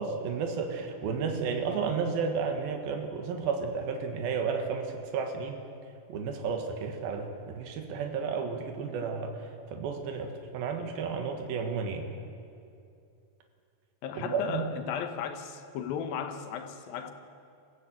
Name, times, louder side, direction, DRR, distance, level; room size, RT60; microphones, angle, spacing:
voice 1, 0.0-5.6 6.1-9.3 9.7-12.1 14.2-14.7, right 5 dB, 75° right, 3.4 m, -32 dB
voice 2, 14.0-17.1, left 8 dB, 75° left, 2.9 m, -35 dB
24.0 x 15.0 x 8.4 m
omnidirectional pair, 4.3 m